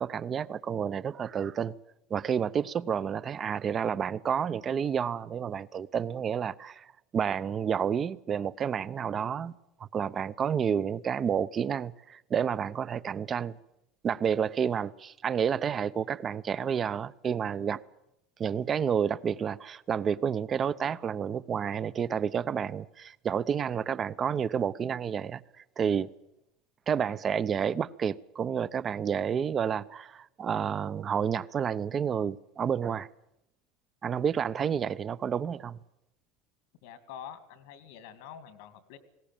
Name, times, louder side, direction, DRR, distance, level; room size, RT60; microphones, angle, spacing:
voice 1, 0.0-1.7 2.1-6.9 7.1-9.5 9.8-13.6 14.0-17.8 18.4-25.4 25.8-26.1 26.9-33.1 34.0-35.8, right 7 dB, 35° right, 0.7 m, -30 dB
voice 2, 36.8-39.0, left 9 dB, 75° left, 2.3 m, -46 dB
19.5 x 17.0 x 9.0 m
supercardioid pair, 105°, 0 cm